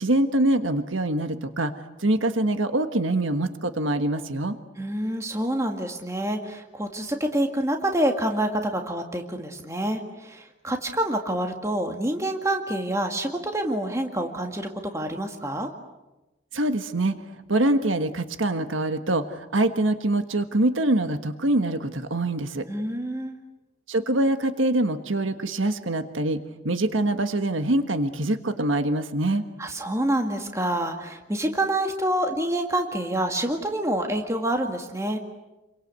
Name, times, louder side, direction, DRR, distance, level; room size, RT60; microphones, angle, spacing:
voice 1, 0.0-1.7 2.0-4.6 16.5-17.2 17.5-22.7 23.9-29.4, right 1 dB, 90° right, 8 dB, 1.5 m, -24 dB
voice 2, 4.8-15.7 22.7-23.4 29.6-35.2, right 1 dB, 15° right, 4 dB, 2.0 m, -27 dB
30.0 x 23.5 x 8.3 m, 1.0 s
head